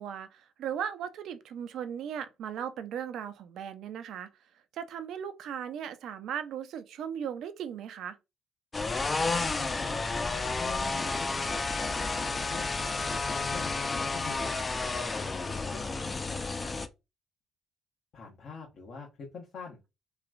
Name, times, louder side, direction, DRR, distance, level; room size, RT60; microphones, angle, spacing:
voice 1, 0.0-4.3 4.7-8.2, right 8 dB, 65° right, 0.3 m, -37 dB
sound 1, 8.7-16.9, left 3 dB, 30° left, 0.4 m, -31 dB
voice 2, 10.4-12.7 13.3-14.5 14.8-15.3 15.7-16.8 18.1-19.1 19.3-19.8, left 4 dB, 55° left, 0.9 m, -45 dB
3.0 x 2.2 x 2.4 m
hypercardioid pair, 50°, 0 cm